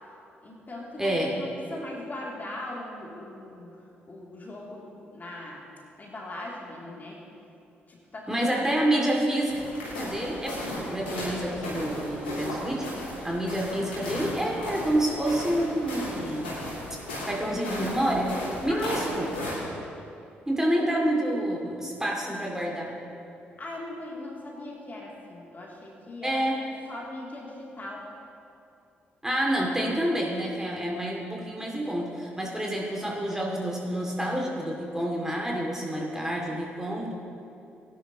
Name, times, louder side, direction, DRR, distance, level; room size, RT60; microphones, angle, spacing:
voice 1, 0.4-5.6 6.0-7.2 7.9-9.3 17.5-17.8 18.7-19.3 20.7-20.9 23.3-26.6 26.9-28.1 31.8-31.9, left 1 dB, 30° left, -3 dB, 3.0 m, -40 dB
voice 2, 1.0-1.3 8.3-9.6 10.0-12.9 13.2-16.6 17.3-19.3 20.5-22.9 26.2-26.6 29.2-37.1, right 1 dB, 10° right, -2 dB, 2.5 m, -28 dB
sound 1, 9.4-19.5, left 1 dB, 85° left, 3.1 m, -35 dB
18.5 x 11.0 x 3.0 m, 2.7 s
figure-of-eight pair, 40°, 5 cm